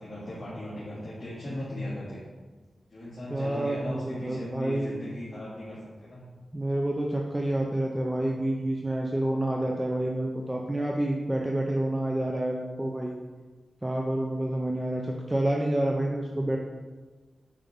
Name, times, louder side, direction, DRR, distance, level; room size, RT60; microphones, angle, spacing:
voice 1, 0.0-2.2 2.9-6.2, left 1 dB, 30° left, -11 dB, 2.5 m, -37 dB
voice 2, 3.3-4.9 6.5-13.1 13.8-16.6, right 1 dB, 10° right, -1 dB, 0.6 m, -28 dB
9.2 x 5.2 x 3.7 m, 1.3 s
wide cardioid pair, 140°, 0 cm